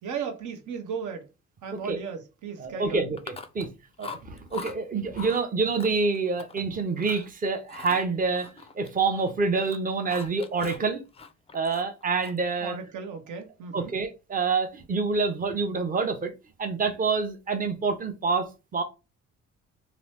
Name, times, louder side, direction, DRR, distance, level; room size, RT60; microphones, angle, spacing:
voice 1, 0.0-1.3 1.6-3.0 12.6-13.9, right 6 dB, 75° right, 0.9 m, -35 dB
voice 2, 2.6-3.2 3.5-3.7 4.0-8.5 8.7-11.0 11.5-12.7 13.7-16.3 16.6-18.8, right 4 dB, 30° right, 0.7 m, -27 dB
Chewing mastication, 3.2-3.7 4.0-4.8 5.1-5.4 5.8-6.6 7.0-7.3 7.7-9.3 9.6-10.9 11.1-12.5, left 5 dB, 20° left, 0.4 m, -42 dB
2.8 x 2.0 x 3.2 m
cardioid pair, 90°, 30 cm